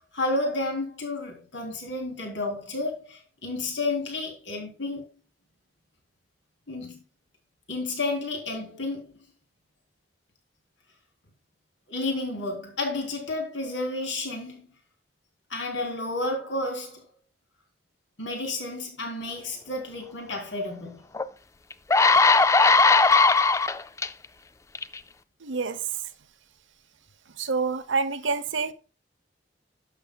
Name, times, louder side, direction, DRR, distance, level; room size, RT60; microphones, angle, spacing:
voice 1, 0.0-5.0 6.7-7.0 7.7-9.2 11.9-14.7 15.5-17.0 18.2-21.0, left 2 dB, 75° left, 3.4 m, -31 dB
sound 1, 21.1-21.2 21.7-24.1 24.8-25.0, left 4 dB, 15° left, 0.3 m, -18 dB
voice 2, 25.4-25.8 27.4-28.7, right 4 dB, 80° right, 0.9 m, -27 dB
11.5 x 7.0 x 2.3 m
head